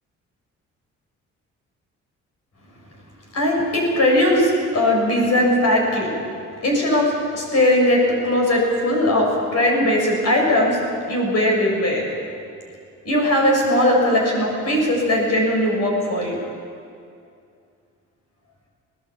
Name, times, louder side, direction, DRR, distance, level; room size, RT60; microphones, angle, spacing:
voice 1, 3.3-6.2 6.6-10.8 11.1-12.0 13.0-16.4, left 1 dB, 55° left, -1 dB, 7.5 m, -19 dB
21.0 x 18.5 x 8.6 m, 2.4 s
cardioid pair, 90°, 30 cm